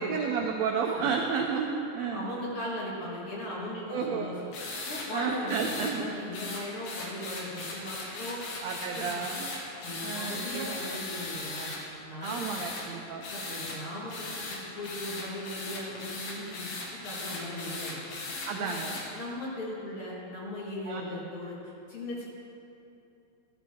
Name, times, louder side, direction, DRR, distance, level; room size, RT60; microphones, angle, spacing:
voice 1, 0.0-2.3 3.9-4.3 5.1-6.1 8.6-9.5 10.0-10.9 12.2-13.2 18.5-18.9 20.9-21.0, right 6 dB, 85° right, 2 dB, 1.5 m, -32 dB
voice 2, 2.0-4.3 4.9-8.4 8.9-9.2 9.8-11.7 12.1-12.5 13.3-18.0 18.5-18.8 19.1-21.6 21.9-22.3, left 1 dB, 45° left, -5 dB, 2.3 m, -38 dB
sound 1, 4.5-5.1 5.5-5.9 6.3-11.8 12.2-12.8 13.2-13.8 14.1-19.0, left 3 dB, 70° left, 3.0 m, -38 dB
12.5 x 12.5 x 3.6 m, 2.8 s
omnidirectional pair, 3.8 m